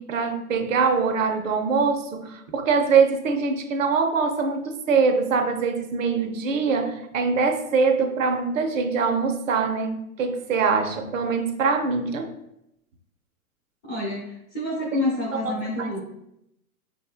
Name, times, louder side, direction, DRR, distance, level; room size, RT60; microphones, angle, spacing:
voice 1, 0.0-12.3 14.9-15.0 15.3-15.5 15.8-16.0, right 5 dB, 60° right, 5 dB, 0.6 m, -23 dB
voice 2, 13.9-16.0, left 1 dB, 15° left, -6 dB, 0.6 m, -28 dB
5.0 x 2.7 x 2.4 m, 0.82 s
hypercardioid pair, 155°, 45 cm